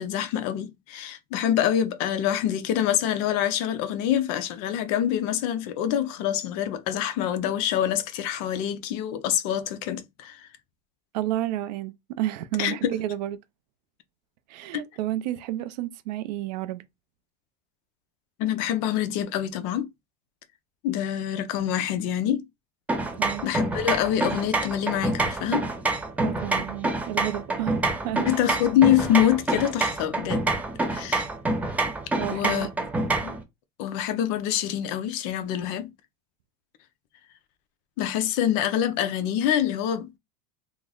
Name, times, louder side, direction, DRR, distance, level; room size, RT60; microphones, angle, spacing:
voice 1, 0.0-10.5 12.6-12.9 14.7-14.8 18.4-19.9 20.8-22.5 23.4-25.7 28.2-30.5 30.9-31.3 32.3-32.7 33.2-33.4 33.8-35.9 38.0-40.2, left 10 dB, 55° left, 0.6 m, -25 dB
voice 2, 11.1-13.4 14.5-16.9 23.2-23.4 26.2-28.3 32.2-32.7 33.0-33.1, right 13 dB, 75° right, 0.5 m, -31 dB
sound 1, 22.9-33.4, right 2 dB, 5° right, 0.5 m, -27 dB
3.2 x 2.0 x 3.8 m
supercardioid pair, 145°, 21 cm